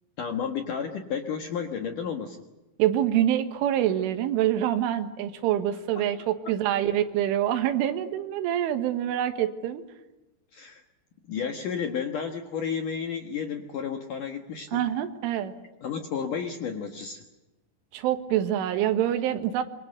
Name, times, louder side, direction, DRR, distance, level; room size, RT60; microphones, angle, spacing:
voice 1, 0.2-2.4 10.5-10.8 11.3-14.8 15.8-17.2, left 7 dB, 60° left, 5 dB, 2.2 m, -32 dB
voice 2, 2.8-9.8 14.7-15.5 17.9-19.6, right 11 dB, 75° right, 7 dB, 3.9 m, -26 dB
27.0 x 23.5 x 6.7 m, 1.0 s
omnidirectional pair, 5.8 m